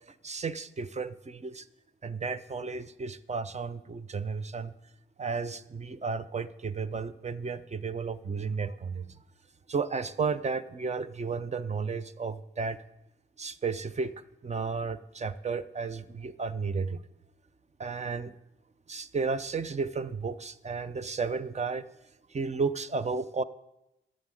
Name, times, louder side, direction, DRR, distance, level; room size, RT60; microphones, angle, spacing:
voice 1, 0.2-1.7 2.0-4.7 5.2-9.1 9.7-12.8 13.4-14.1 14.4-17.0 17.8-18.3 18.9-21.9 22.3-23.4, right 4 dB, 30° right, 13 dB, 0.7 m, -33 dB
11.0 x 6.4 x 9.0 m, 0.90 s
cardioid pair, 80°, 21 cm